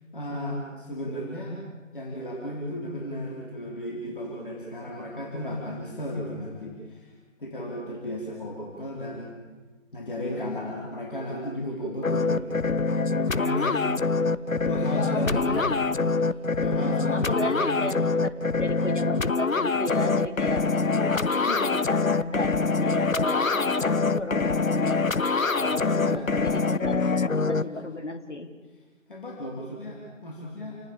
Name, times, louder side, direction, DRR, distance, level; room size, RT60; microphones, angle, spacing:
voice 1, 0.1-1.6 1.9-7.1 7.4-9.4 9.9-12.7 13.0-13.8 14.7-15.7 16.1-16.3 16.6-17.9 25.8-26.3 27.6-27.8 29.1-30.8, left 1 dB, 40° left, -2 dB, 4.6 m, -34 dB
sound 1, 12.0-27.6, left 4 dB, 85° left, 0.9 m, -25 dB
voice 2, 15.0-15.7 16.8-18.0 18.2-25.2 25.6-28.5, left 1 dB, 60° left, 7 dB, 3.1 m, -34 dB
sound 2, 15.3-15.7, equal, ahead, 2.7 m, -38 dB
29.5 x 19.5 x 7.2 m, 1.3 s
figure-of-eight pair, 160°, 39 cm